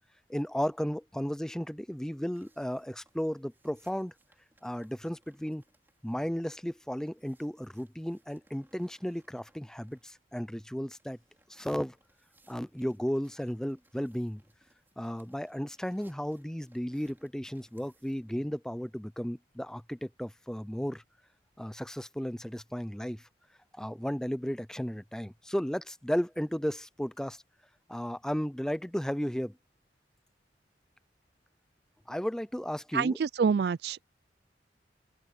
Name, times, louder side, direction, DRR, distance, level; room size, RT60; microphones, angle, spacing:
voice 1, 0.3-4.1 4.6-5.6 6.0-11.2 11.5-12.0 12.5-14.4 15.0-21.0 21.6-23.3 23.8-27.4 27.9-29.6 32.1-33.2, equal, 5° left, 0.5 m, -34 dB
sound 1, 2.3-10.4 10.9-18.3, right 1 dB, 10° right, 4.7 m, -68 dB
voice 2, 32.9-34.0, right 6 dB, 60° right, 0.4 m, -27 dB
open air
head